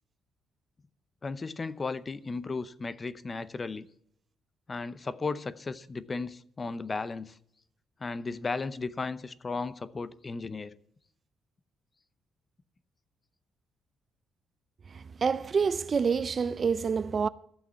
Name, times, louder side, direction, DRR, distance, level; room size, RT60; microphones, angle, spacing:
voice 1, 1.2-3.9 4.7-7.4 8.0-10.7, left 4 dB, 30° left, 0.7 m, -35 dB
voice 2, 14.9-17.3, right 5 dB, 40° right, 0.5 m, -27 dB
14.5 x 6.0 x 8.2 m
cardioid pair, 90°, 0 cm